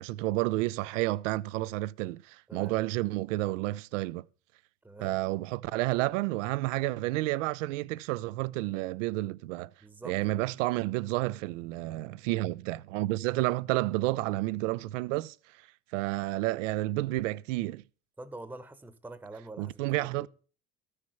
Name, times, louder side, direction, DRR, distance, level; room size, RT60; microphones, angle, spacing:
voice 1, 0.0-4.2 5.0-9.7 10.0-15.4 15.9-17.8 19.6-20.3, right 18 dB, 80° right, 0.5 m, -30 dB
voice 2, 4.8-5.2 9.8-10.5 18.2-20.3, right 2 dB, 5° right, 0.9 m, -46 dB
13.5 x 6.5 x 5.7 m
hypercardioid pair, 80°, 37 cm